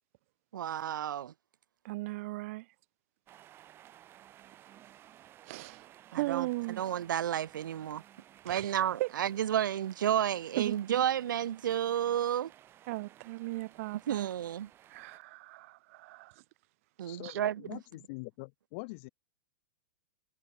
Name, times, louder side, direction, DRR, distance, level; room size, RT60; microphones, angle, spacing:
voice 1, 0.5-1.3 6.1-6.5 6.8-8.0 8.4-12.5 14.1-14.7 17.0-17.8, right 10 dB, 85° right, 1.1 m, -31 dB
voice 2, 1.8-2.7 5.4-6.8 8.5-8.7 9.0-9.1 10.6-10.8 12.9-14.3 14.9-16.3 17.2-17.4, right 21 dB, 45° right, 3.6 m, -37 dB
sound 1, 3.3-15.2, right 12 dB, 20° right, 4.7 m, -57 dB
voice 3, 17.1-19.1, left 30 dB, 40° left, 1.7 m, -44 dB
supercardioid pair, 160°, 10 cm